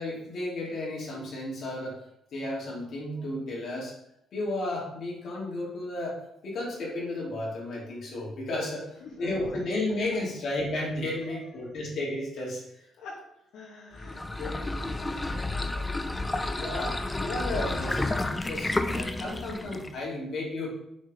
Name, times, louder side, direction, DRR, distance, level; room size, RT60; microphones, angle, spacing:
voice 1, 0.0-2.0 2.3-3.9 4.3-8.9 9.2-12.6 16.6-20.7, left 1 dB, 65° left, -4 dB, 3.3 m, -33 dB
voice 2, 8.7-9.3 11.0-11.8 13.0-16.0, left 4 dB, 80° left, -6 dB, 2.2 m, -46 dB
sound 1, 13.9-20.0, left 2 dB, 20° left, 0.7 m, -31 dB
6.6 x 5.3 x 5.4 m, 0.78 s
cardioid pair, 90°, 0 cm